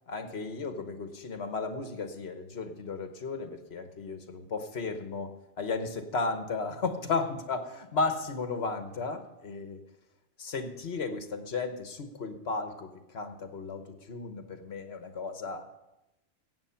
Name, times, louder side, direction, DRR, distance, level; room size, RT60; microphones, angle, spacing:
voice 1, 0.1-9.8 10.4-15.7, left 4 dB, 60° left, 8 dB, 1.4 m, -34 dB
15.5 x 8.5 x 5.8 m, 0.92 s
omnidirectional pair, 1.2 m